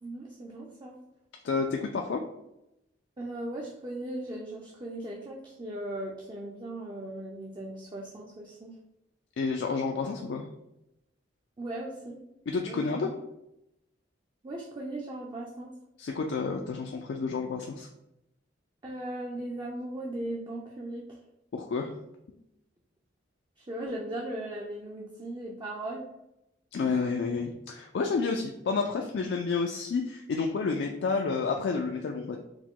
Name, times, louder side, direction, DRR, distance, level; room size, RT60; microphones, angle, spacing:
voice 1, 0.0-1.0 3.2-8.7 11.6-12.2 12.7-13.1 14.4-15.7 18.8-21.2 23.6-26.0, right 1 dB, 25° right, -2 dB, 0.4 m, -38 dB
voice 2, 1.4-2.2 9.4-10.5 12.5-13.1 16.0-17.9 21.5-21.9 26.7-32.4, left 4 dB, 65° left, 3 dB, 0.3 m, -30 dB
4.8 x 2.1 x 3.6 m, 0.87 s
head